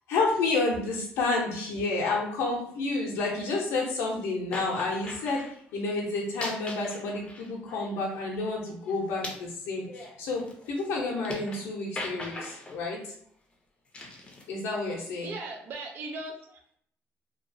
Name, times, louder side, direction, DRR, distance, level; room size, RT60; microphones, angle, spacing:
voice 1, 0.1-13.1 14.5-15.3, left 3 dB, 85° left, -3 dB, 0.6 m, -30 dB
sound 1, 4.5-5.5 6.2-8.3 8.6-11.7 12.0-12.8 13.9-14.5, left 2 dB, 25° left, 0.5 m, -40 dB
voice 2, 15.2-16.8, right 2 dB, 50° right, 1 dB, 0.4 m, -38 dB
2.8 x 2.3 x 2.6 m, 0.64 s
cardioid pair, 120°, 4 cm